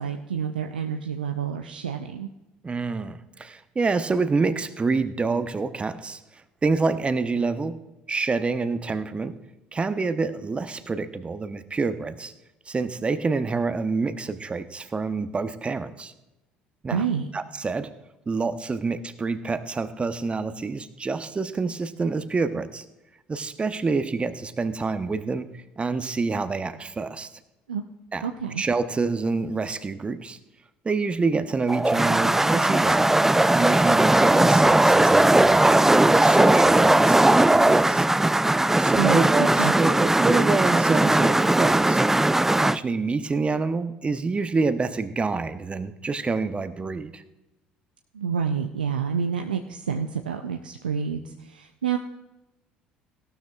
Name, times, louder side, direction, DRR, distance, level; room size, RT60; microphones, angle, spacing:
voice 1, 0.0-2.3 16.9-17.3 27.7-27.8 28.2-28.6 39.0-39.7 48.1-52.0, right 7 dB, 90° right, 4 dB, 0.5 m, -28 dB
voice 2, 2.6-7.8 8.1-9.3 9.7-12.3 12.7-16.1 16.8-17.0 17.3-17.9 18.3-22.8 23.3-27.3 28.1-28.2 28.6-30.4 30.8-33.1 33.5-38.0 38.8-42.0 42.6-47.2, right 4 dB, 25° right, 11 dB, 0.8 m, -27 dB
sound 1, 31.7-42.8, right 1 dB, 10° right, 0.3 m, -18 dB
16.5 x 12.5 x 2.4 m, 0.97 s
hypercardioid pair, 60°, 5 cm